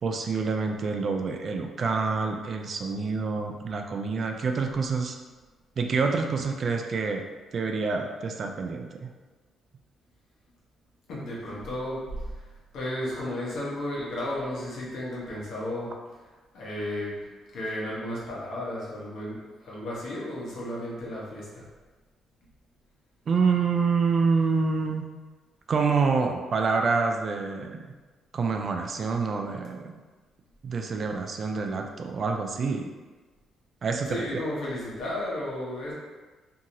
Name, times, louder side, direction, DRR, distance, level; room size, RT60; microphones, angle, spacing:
voice 1, 0.0-5.2 5.8-7.2 7.5-9.1 23.3-25.0 25.7-27.9 28.3-29.9 30.6-32.9 33.8-34.2, right 4 dB, 50° right, 4 dB, 0.3 m, -27 dB
voice 2, 11.1-12.4 12.7-15.9 16.5-17.2 17.5-21.6 34.1-35.9, left 1 dB, 70° left, -6 dB, 1.0 m, -33 dB
2.8 x 2.7 x 2.6 m, 1.3 s
cardioid pair, 90°, 0 cm